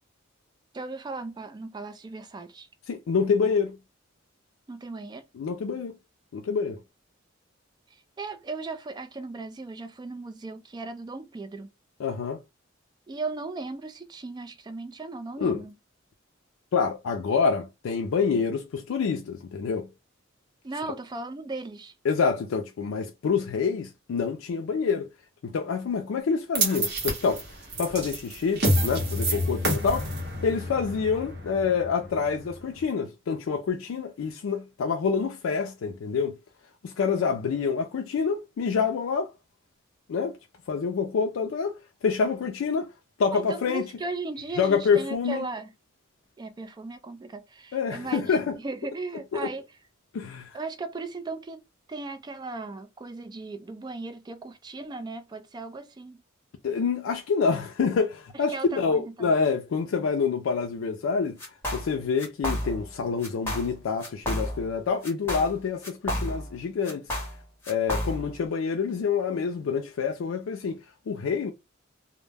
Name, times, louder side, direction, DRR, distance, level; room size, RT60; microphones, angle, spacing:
voice 1, 0.7-2.7 4.7-5.2 7.9-11.7 13.1-15.7 20.6-21.9 43.3-45.7 46.4-49.6 50.5-51.6 51.9-56.2 58.5-59.3, right 3 dB, 20° right, 0.3 m, -37 dB
voice 2, 2.9-3.8 5.3-6.0 6.3-6.8 12.0-12.4 15.4-15.6 16.7-19.9 22.0-25.1 25.4-27.4 27.8-30.1 30.4-36.4 36.8-39.3 40.1-40.4 40.7-41.8 42.0-42.9 43.2-43.9 44.6-45.5 47.7-48.6 49.3-49.5 50.1-50.6 56.6-61.4 61.7-67.1 67.7-70.8 71.1-71.5, left 5 dB, 80° left, 0.3 m, -27 dB
sound 1, 26.5-32.8, right 1 dB, 55° right, 0.8 m, -29 dB
sound 2, 61.4-61.9 62.2-62.9 63.2-63.7 64.0-64.7 65.0-66.6 66.8-68.4, equal, 10° left, 0.9 m, -31 dB
2.1 x 2.0 x 3.3 m
head